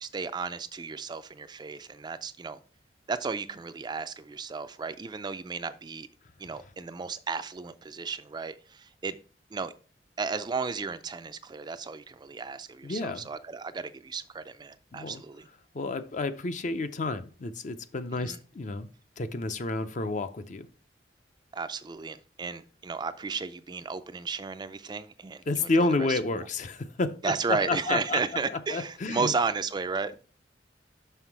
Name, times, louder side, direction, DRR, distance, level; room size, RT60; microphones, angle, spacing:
voice 1, 0.0-2.6 3.1-6.1 6.4-9.2 9.5-9.7 10.2-15.5 18.2-18.4 21.5-26.5 27.2-30.1, right 4 dB, 25° right, 0.4 m, -34 dB
voice 2, 12.8-13.3 14.9-15.2 15.7-18.9 19.2-20.7 25.5-28.2 28.5-29.3, left 3 dB, 45° left, 0.6 m, -30 dB
6.0 x 5.7 x 4.6 m
head